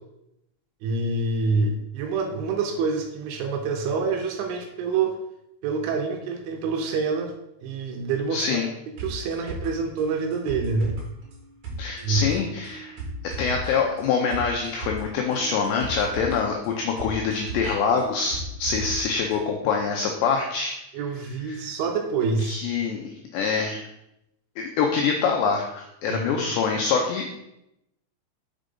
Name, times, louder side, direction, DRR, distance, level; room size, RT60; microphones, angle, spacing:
voice 1, 0.8-5.2 5.6-7.3 7.6-11.0 12.0-12.3 20.9-22.6 26.1-26.4, right 4 dB, 80° right, 3 dB, 3.0 m, -27 dB
voice 2, 8.3-8.7 11.8-13.0 13.2-20.7 21.5-21.6 22.5-23.9 24.6-27.3, left 5 dB, 85° left, 1 dB, 2.5 m, -25 dB
sound 1, 9.0-19.0 19.3-19.4, right 1 dB, 55° right, 2.3 m, -36 dB
6.6 x 5.0 x 5.2 m, 0.84 s
omnidirectional pair, 5.9 m